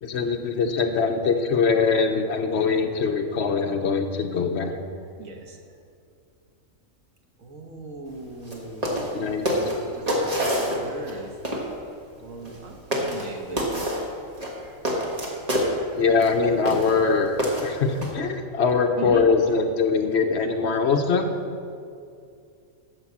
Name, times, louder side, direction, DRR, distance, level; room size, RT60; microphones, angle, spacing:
voice 1, 0.0-4.7 9.1-9.5 15.9-21.3, left 5 dB, 60° left, 5 dB, 1.0 m, -22 dB
voice 2, 5.2-5.6 7.4-9.0 9.4-11.3 12.2-13.9 14.6-16.0 19.0-19.3, right 2 dB, 80° right, 2 dB, 1.6 m, -39 dB
sound 1, 8.4-8.6 8.8-9.1 9.4-11.1 11.4-11.7 12.4-12.6 12.9-13.3 13.6-14.0 14.4-15.7 16.2-16.3 16.6-17.0 17.4-18.1, equal, 30° right, 1.6 m, -26 dB
12.0 x 5.3 x 7.3 m, 2.4 s
omnidirectional pair, 1.4 m